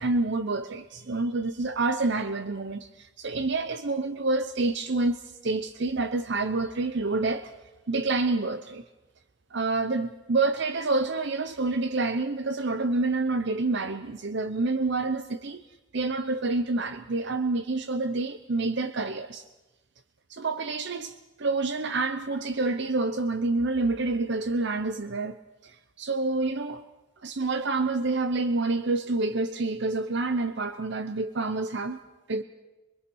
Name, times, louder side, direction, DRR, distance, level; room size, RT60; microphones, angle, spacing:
voice 1, 0.0-7.5 7.9-8.8 9.5-15.6 15.9-19.4 20.3-25.4 25.6-26.8 27.2-32.0 32.3-32.4, right 3 dB, 60° right, 0.8 m, -28 dB
24.0 x 23.0 x 6.3 m
head